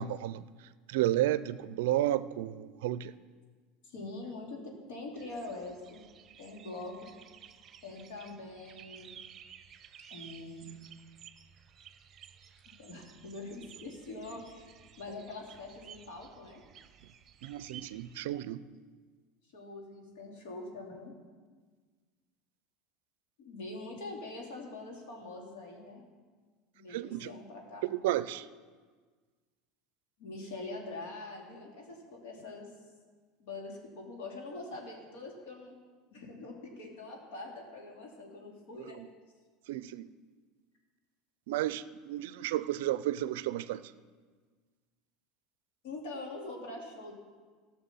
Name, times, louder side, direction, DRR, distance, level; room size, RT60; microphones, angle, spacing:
voice 1, 0.0-3.1 17.4-18.6 26.9-27.4 27.8-28.5 39.0-39.1 39.7-40.1 41.5-43.9, right 13 dB, 75° right, 16 dB, 0.4 m, -32 dB
voice 2, 3.8-6.0 6.4-7.1 7.8-9.1 10.1-10.7 12.8-14.7 15.0-16.6 19.5-21.1 23.4-26.0 26.7-27.9 30.2-32.7 33.4-35.8 36.1-39.0 45.8-47.1, left 2 dB, 75° left, 0 dB, 2.8 m, -44 dB
sound 1, 5.2-18.2, right 9 dB, 35° right, 0.7 m, -54 dB
14.0 x 6.1 x 6.9 m, 1.5 s
supercardioid pair, 100°, 0 cm